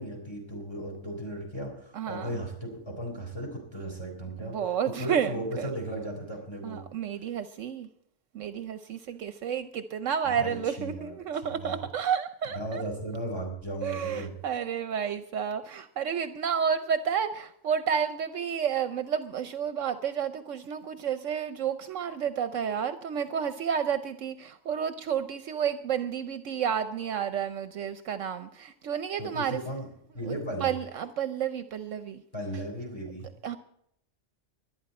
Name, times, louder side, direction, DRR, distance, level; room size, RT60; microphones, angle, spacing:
voice 1, 0.0-4.6 5.0-6.8 10.2-11.8 12.5-14.3 29.2-29.9 30.1-30.7 32.3-33.3, right 1 dB, 20° left, 1 dB, 4.1 m, -36 dB
voice 2, 1.9-2.4 4.4-5.7 6.6-7.9 8.3-12.8 13.8-29.6 30.2-32.2 33.4-33.6, right 8 dB, 75° right, 10 dB, 1.1 m, -31 dB
24.0 x 9.6 x 4.2 m, 0.72 s
omnidirectional pair, 1.3 m